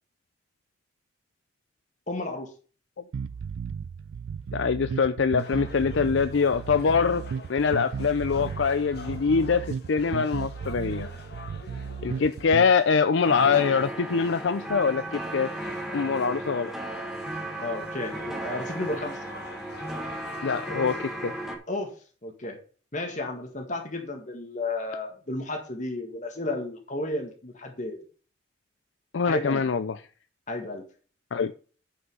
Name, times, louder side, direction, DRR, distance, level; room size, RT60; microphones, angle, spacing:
voice 1, 2.1-2.5 17.6-19.2 21.7-21.9 22.2-22.6 22.9-28.0 29.2-29.6 30.5-30.8, left 2 dB, 40° left, 2 dB, 1.8 m, -32 dB
sound 1, 3.1-12.7, right 6 dB, 80° right, 0.4 m, -35 dB
voice 2, 4.5-7.2 7.5-11.1 12.0-15.5 15.9-16.7 20.4-21.3 29.1-30.0 31.3-31.5, left 5 dB, 70° left, 11 dB, 0.5 m, -24 dB
sound 2, 5.4-21.5, left 2 dB, 55° left, 1.9 m, -46 dB
sound 3, 13.2-21.6, right 1 dB, ahead, 1.5 m, -35 dB
9.7 x 5.6 x 5.4 m, 0.39 s
head